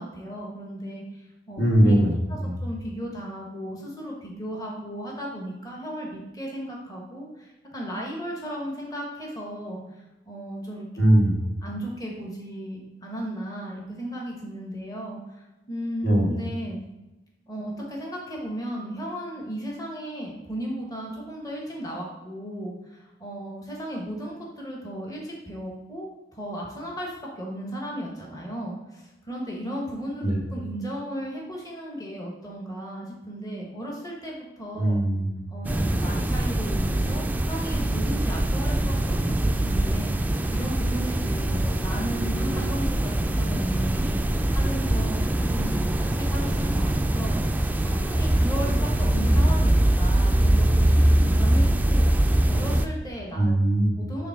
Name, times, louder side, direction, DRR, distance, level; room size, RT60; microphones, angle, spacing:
voice 1, 0.0-2.0 2.3-10.9 11.6-16.8 17.5-26.1 26.3-34.9 35.5-53.5 54.0-54.3, equal, 20° left, -2 dB, 1.2 m, -35 dB
voice 2, 1.6-2.1 2.4-2.5 11.0-11.4 16.0-16.3 30.2-30.4 34.8-35.3 41.5-41.6 53.4-54.0, right 1 dB, 80° left, -3 dB, 2.1 m, -20 dB
sound 1, 35.6-52.9, right 1 dB, 10° right, 0.3 m, -23 dB
6.9 x 3.5 x 5.8 m, 1.0 s
head